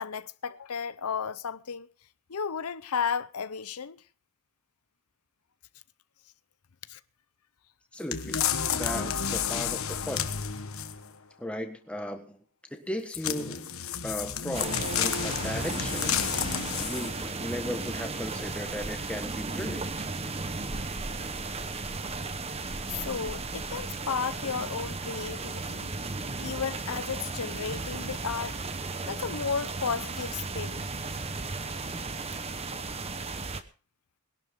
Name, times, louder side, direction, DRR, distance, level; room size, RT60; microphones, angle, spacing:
voice 1, 0.0-1.9 2.3-4.0 6.9-7.0 22.8-25.9 26.4-28.6 29.0-30.8, left 6 dB, 90° left, 0.7 m, -33 dB
voice 2, 7.9-8.4 8.7-10.3 11.4-12.4 12.7-13.7 14.0-20.1, equal, 5° left, 1.5 m, -37 dB
sound 1, 8.1-11.1 13.1-17.3 17.8-17.9, left 8 dB, 70° left, 1.3 m, -31 dB
sound 2, 14.5-33.6, right 3 dB, 25° right, 1.0 m, -35 dB
21.0 x 12.0 x 3.7 m
head